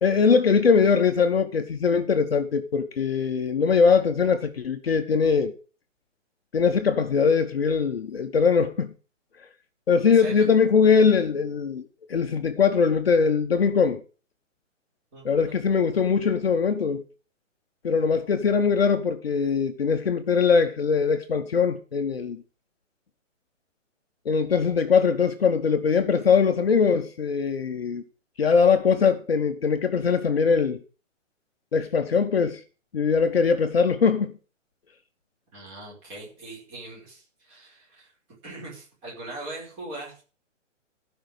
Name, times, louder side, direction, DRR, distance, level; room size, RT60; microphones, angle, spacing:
voice 1, 0.0-5.5 6.5-8.9 9.9-11.8 12.1-14.0 15.2-17.0 17.8-22.4 24.2-28.0 28.4-30.8 31.7-32.6 32.9-34.3, left 5 dB, 50° left, 1.2 m, -21 dB
voice 2, 10.0-10.4 15.1-15.6 35.5-38.1 38.4-40.2, right 2 dB, 15° right, 5.0 m, -41 dB
15.5 x 5.8 x 6.7 m
hypercardioid pair, 175°, 39 cm